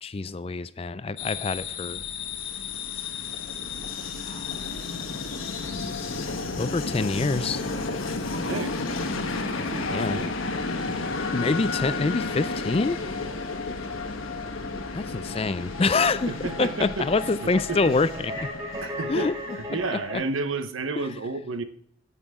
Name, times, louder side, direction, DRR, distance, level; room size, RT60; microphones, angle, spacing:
voice 1, 0.0-2.0 4.2-4.7 6.6-7.6 9.9-10.2 11.3-13.0 14.9-16.3 16.6-18.5 19.1-19.3 19.7-20.2 21.0-21.1, left 3 dB, 30° left, 16 dB, 0.4 m, -26 dB
sound 1, 1.2-6.3, left 10 dB, 65° left, 1.2 m, -36 dB
Train, 2.1-19.9, left 3 dB, 90° left, 1.3 m, -32 dB
voice 2, 8.5-8.8 9.6-10.3 16.3-17.1 17.4-17.9 18.8-21.6, right 3 dB, 85° right, 10 dB, 1.0 m, -31 dB
sound 2, 14.7-20.1, left 1 dB, 20° right, 2.7 m, -37 dB
10.0 x 9.1 x 3.6 m, 0.64 s
head